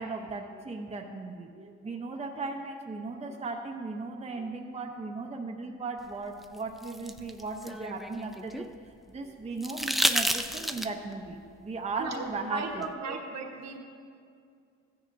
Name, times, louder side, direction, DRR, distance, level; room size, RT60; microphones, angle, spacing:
voice 1, 0.0-8.7 9.1-13.2, right 3 dB, 20° right, 2 dB, 0.8 m, -37 dB
sound 1, 6.4-8.7 9.6-11.1 12.8-12.9, equal, ahead, 0.4 m, -30 dB
voice 2, 12.0-13.8, right 4 dB, 60° right, 1 dB, 1.3 m, -36 dB
14.0 x 9.7 x 2.6 m, 2.3 s
cardioid pair, 90°, 30 cm